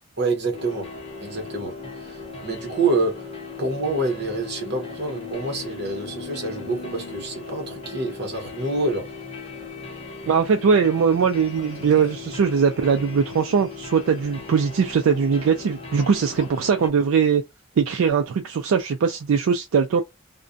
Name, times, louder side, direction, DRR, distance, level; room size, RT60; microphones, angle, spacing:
voice 1, 0.2-0.9 1.2-1.7 2.0-3.3 3.6-9.1, right 2 dB, 50° right, 0.9 m, -27 dB
sound 1, 0.5-16.9, left 4 dB, 25° left, 0.7 m, -38 dB
sound 2, 4.6-8.5 9.5-9.6 11.6-12.4 15.9-17.0, left 3 dB, 60° left, 0.7 m, -44 dB
voice 2, 10.3-17.4 17.8-20.0, right 6 dB, 75° right, 0.3 m, -20 dB
2.4 x 2.1 x 2.5 m
head